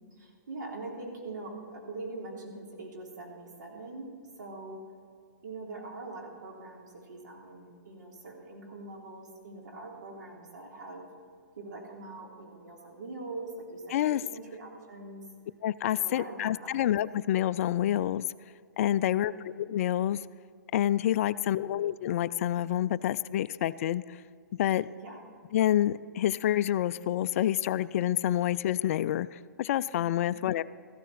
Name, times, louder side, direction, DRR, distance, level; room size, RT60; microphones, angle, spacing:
voice 1, 0.1-4.8 5.4-11.0 11.6-15.2 15.9-16.9 19.0-19.4 21.3-21.7 25.0-25.2 30.0-30.1, right 2 dB, 70° right, -1 dB, 3.3 m, -43 dB
voice 2, 15.6-18.2 18.8-19.3 19.6-20.2 20.7-24.2 24.6-24.9 25.5-30.6, left 12 dB, 50° left, 17 dB, 0.3 m, -28 dB
14.5 x 13.5 x 4.2 m, 2.3 s
hypercardioid pair, 130°, 10 cm